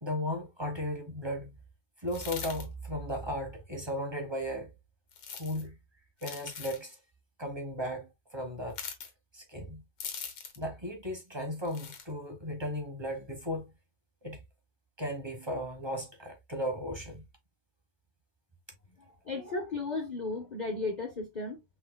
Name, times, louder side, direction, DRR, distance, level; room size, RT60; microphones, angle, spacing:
voice 1, 0.0-1.5 2.0-4.7 5.4-5.7 6.2-7.0 7.4-8.8 9.3-9.8 10.6-13.7 14.2-14.4 15.0-17.2, equal, 20° right, 1.1 m, -36 dB
sound 1, 2.1-2.7 5.1-5.6 6.2-6.8 8.7-9.1 10.0-10.6 11.7-12.1, left 6 dB, 80° left, 1.8 m, -41 dB
voice 2, 19.0-21.6, left 3 dB, 50° left, 0.5 m, -35 dB
5.5 x 3.8 x 2.2 m
omnidirectional pair, 1.9 m